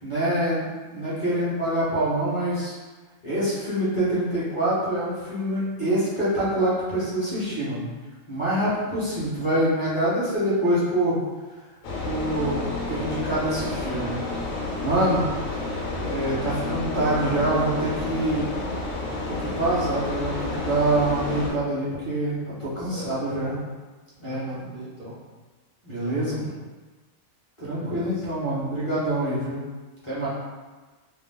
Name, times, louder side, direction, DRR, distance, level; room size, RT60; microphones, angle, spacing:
voice 1, 0.0-2.7 3.2-7.9 8.3-11.2 12.0-14.2 14.8-15.3 15.6-15.7 16.0-18.5 19.3-23.6 24.2-24.6 25.8-26.4 27.6-29.6 30.0-30.3, right 1 dB, 25° left, -12 dB, 0.8 m, -25 dB
sound 1, 11.8-21.5, left 2 dB, 75° left, 1.0 m, -30 dB
voice 2, 22.8-23.5 24.2-25.2 25.9-26.6 27.8-28.2, right 1 dB, 60° right, -8 dB, 0.6 m, -41 dB
2.4 x 2.1 x 3.5 m, 1.3 s
omnidirectional pair, 1.4 m